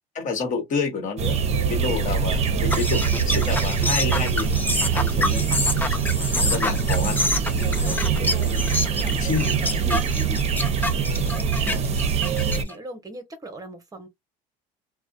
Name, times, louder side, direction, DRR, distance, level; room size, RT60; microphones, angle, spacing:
voice 1, 0.1-5.5 6.3-8.7 9.1-10.0 11.5-11.8, left 4 dB, 50° left, 1.1 m, -30 dB
sound 1, 1.2-12.6, right 6 dB, 40° right, 0.6 m, -23 dB
voice 2, 2.1-2.7 3.0-3.2 3.5-3.8 7.6-8.5 8.8-10.6 12.4-14.1, right 2 dB, 20° right, 0.9 m, -40 dB
sound 2, 2.7-12.7, left 2 dB, 10° left, 0.6 m, -27 dB
2.4 x 2.1 x 2.5 m
supercardioid pair, 100°, 17 cm